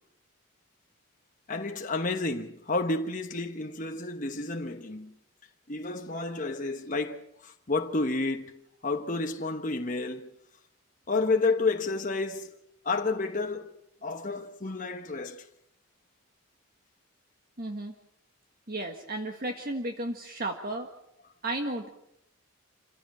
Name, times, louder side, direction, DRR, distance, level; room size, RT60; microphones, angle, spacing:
voice 1, 1.5-5.1 5.7-10.3 11.1-12.5 12.8-13.7 14.0-15.4, left 3 dB, 35° left, 1.1 m, -30 dB
voice 2, 17.6-17.9 18.7-20.9 21.4-21.9, right 1 dB, 40° right, 1.7 m, -33 dB
27.5 x 16.0 x 7.5 m
head